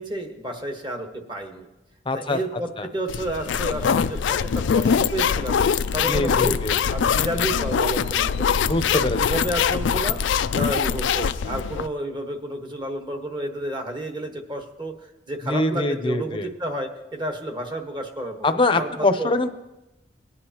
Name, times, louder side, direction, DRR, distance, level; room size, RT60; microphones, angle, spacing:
voice 1, 0.0-1.6 2.1-5.6 5.9-6.6 6.9-8.7 9.1-10.2 10.5-14.9 15.3-19.3, right 1 dB, 25° right, 4 dB, 1.2 m, -31 dB
voice 2, 2.1-2.4 2.8-2.9 6.1-6.8 8.6-9.4 15.4-16.5 18.4-19.5, left 2 dB, 30° left, 7 dB, 0.7 m, -23 dB
sound 1, 3.1-11.9, left 7 dB, 85° left, 0.4 m, -23 dB
20.0 x 9.7 x 2.9 m, 0.98 s
head